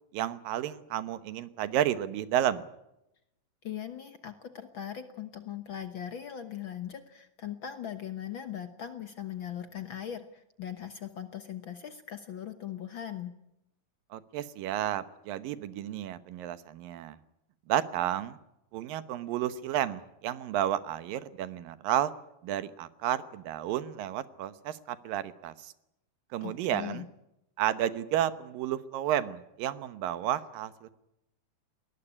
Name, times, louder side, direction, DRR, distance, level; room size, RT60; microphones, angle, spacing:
voice 1, 0.1-2.6 14.1-17.2 17.7-18.4 18.7-22.1 22.4-25.7 26.3-27.1 27.6-30.9, right 11 dB, 85° right, 13 dB, 2.8 m, -31 dB
voice 2, 3.6-13.3 26.4-27.1, left 10 dB, 65° left, 9 dB, 1.2 m, -40 dB
21.0 x 19.0 x 9.9 m, 0.85 s
omnidirectional pair, 3.9 m